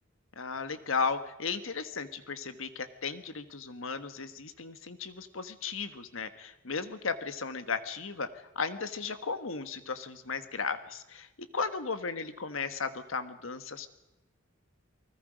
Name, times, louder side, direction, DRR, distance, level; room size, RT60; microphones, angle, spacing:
voice 1, 0.4-13.9, left 5 dB, 75° left, 10 dB, 1.4 m, -35 dB
29.0 x 20.0 x 5.1 m, 0.98 s
head